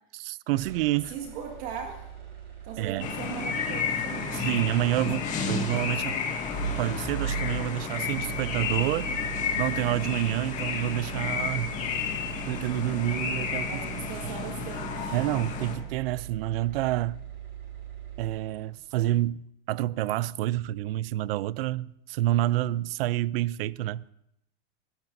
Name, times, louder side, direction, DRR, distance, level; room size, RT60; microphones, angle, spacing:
voice 1, 0.1-1.1 2.8-3.1 4.3-6.2 6.8-9.1 9.6-11.7 12.5-13.9 15.1-17.2 18.2-24.1, right 15 dB, 80° right, 0.5 m, -28 dB
sound 1, 0.5-18.8, right 7 dB, 35° right, 4.3 m, -40 dB
voice 2, 1.1-2.1 2.6-4.5 13.7-15.2, right 7 dB, 55° right, 1.9 m, -39 dB
sound 2, 3.0-15.7, left 6 dB, 25° left, 2.0 m, -32 dB
27.0 x 15.0 x 2.7 m
supercardioid pair, 160°, 29 cm